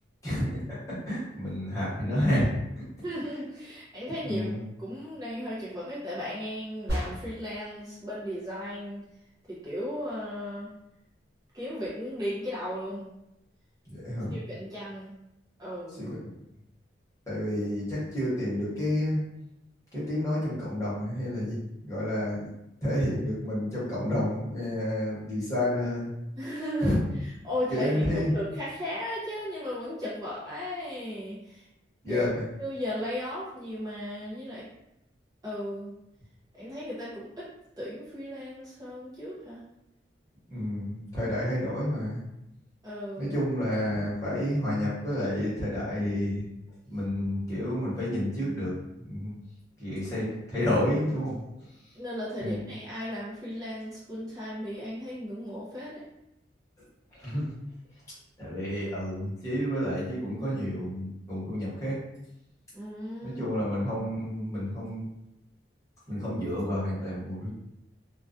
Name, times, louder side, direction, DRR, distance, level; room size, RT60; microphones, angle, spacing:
voice 1, 0.2-2.8 4.2-4.6 13.9-14.3 16.0-16.2 17.3-19.2 19.9-22.5 22.8-26.1 26.8-27.0 27.7-28.3 32.0-32.4 40.5-42.2 43.2-46.4 46.9-49.3 49.8-51.4 52.4-52.6 57.1-57.5 58.4-62.0 63.2-65.1 66.1-67.5, left 1 dB, 15° left, -10 dB, 1.0 m, -30 dB
voice 2, 3.0-4.5 4.8-9.0 9.5-10.7 11.5-13.1 14.3-15.1 15.6-16.1 26.4-26.9 27.2-31.7 32.1-32.3 32.6-34.7 35.4-35.9 36.5-37.5 37.8-39.6 42.8-43.4 51.9-56.0 62.7-63.6, equal, 20° right, -9 dB, 0.5 m, -36 dB
sound 1, 6.9-7.6, equal, 60° right, 0.9 m, -32 dB
2.2 x 2.2 x 2.5 m, 0.86 s
head